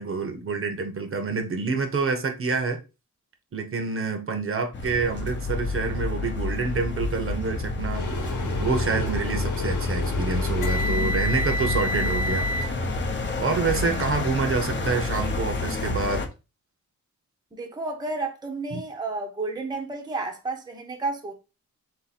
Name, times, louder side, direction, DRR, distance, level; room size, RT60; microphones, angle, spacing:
voice 1, 0.0-2.8 3.5-8.1 8.6-12.9 13.4-16.2 18.7-18.8, right 4 dB, 45° right, 0.8 m, -27 dB
sound 1, 4.7-16.3, left 2 dB, 40° left, 0.7 m, -28 dB
sound 2, 7.9-12.6, left 1 dB, 85° left, 1.2 m, -31 dB
voice 2, 17.5-21.3, right 3 dB, 15° right, 0.7 m, -31 dB
3.9 x 2.8 x 4.0 m
wide cardioid pair, 130°, 31 cm